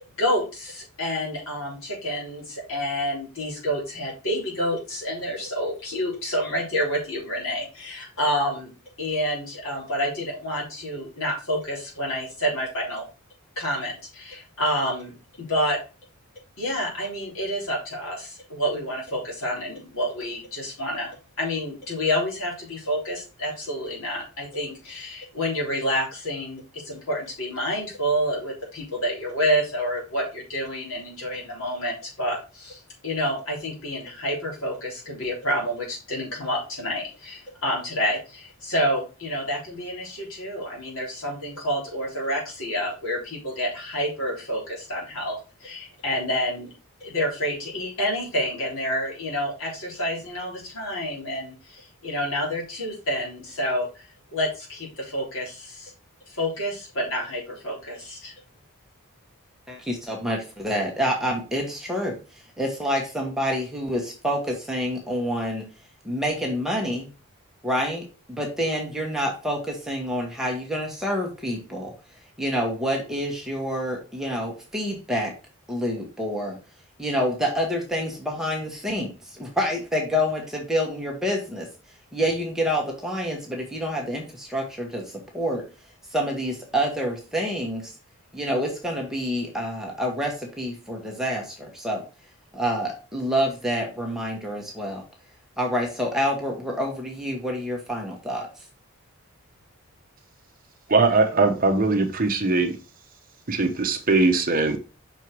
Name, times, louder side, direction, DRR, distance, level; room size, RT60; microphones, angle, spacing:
voice 1, 0.2-8.7 9.0-13.1 13.6-15.8 16.6-46.7 47.0-54.1 54.3-55.9 56.3-58.3, equal, 65° left, -3 dB, 3.6 m, -28 dB
voice 2, 59.7-65.7 66.0-67.1 67.6-71.9 72.4-75.3 75.7-76.6 77.0-81.7 82.1-85.6 86.1-87.9 88.3-92.1 92.5-95.0 95.6-98.6, equal, ahead, 0 dB, 1.2 m, -27 dB
voice 3, 100.9-102.8 103.5-104.8, right 3 dB, 40° right, 6 dB, 0.8 m, -20 dB
6.0 x 4.5 x 4.6 m, 0.32 s
head